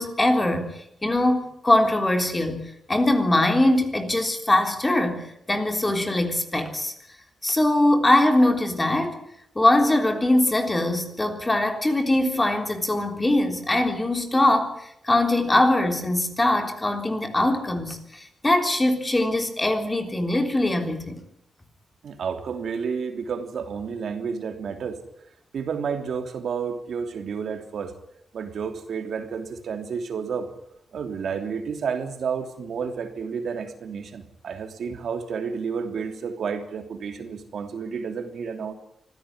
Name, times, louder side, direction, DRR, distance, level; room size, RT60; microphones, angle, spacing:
voice 1, 0.0-6.9 7.4-9.2 9.6-21.2, left 1 dB, 15° left, 3.6 m, -22 dB
voice 2, 22.0-25.0 25.5-27.9 28.3-30.5 30.9-38.7, right 6 dB, 70° right, 3.1 m, -31 dB
25.5 x 15.5 x 9.7 m
wide cardioid pair, 125°, 0 cm